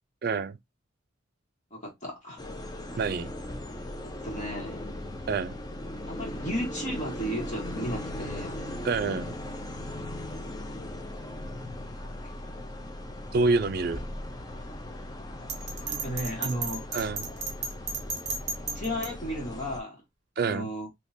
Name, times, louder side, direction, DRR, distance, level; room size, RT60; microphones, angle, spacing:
voice 1, 0.2-0.5 3.0-3.3 5.3-5.5 8.8-9.3 13.3-14.0 16.9-17.3 20.4-20.7, right 4 dB, 50° right, 0.4 m, -27 dB
voice 2, 1.7-2.4 4.0-4.8 6.1-8.7 15.8-16.9 18.7-20.0 20.4-20.9, equal, 35° left, 1.7 m, -34 dB
sound 1, 2.4-19.8, left 1 dB, 20° left, 0.4 m, -38 dB
Bell, 15.5-19.1, right 4 dB, 35° right, 1.1 m, -34 dB
3.7 x 2.9 x 2.6 m
head